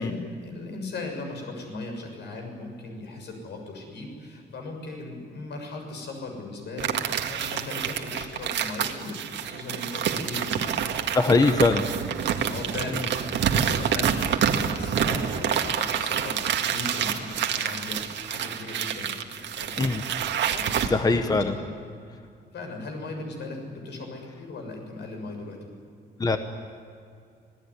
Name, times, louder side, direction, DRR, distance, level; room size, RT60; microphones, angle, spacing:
voice 1, 0.0-11.2 12.4-19.9 20.5-21.7 22.5-25.7, left 2 dB, 65° left, 3 dB, 6.9 m, -38 dB
sound 1, 6.8-20.9, right 8 dB, 75° right, 2.0 m, -27 dB
voice 2, 11.1-11.9 19.8-20.0 20.8-21.5 26.2-26.4, left 3 dB, 20° left, 7 dB, 1.0 m, -21 dB
26.5 x 19.0 x 9.9 m, 2.4 s
wide cardioid pair, 170°, 19 cm